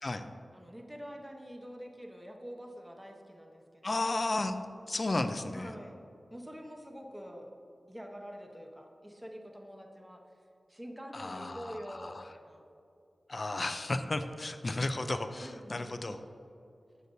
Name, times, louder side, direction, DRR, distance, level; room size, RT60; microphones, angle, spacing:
voice 1, 0.5-4.2 5.5-6.0 6.3-7.5 7.9-10.2 10.7-12.6 15.4-16.1, equal, 15° right, 1 dB, 0.9 m, -46 dB
voice 2, 3.8-4.6 4.9-5.7 11.1-12.2 13.3-16.2, left 2 dB, 50° left, 9 dB, 0.4 m, -33 dB
7.8 x 6.5 x 2.7 m, 2.7 s
cardioid pair, 45°, 0 cm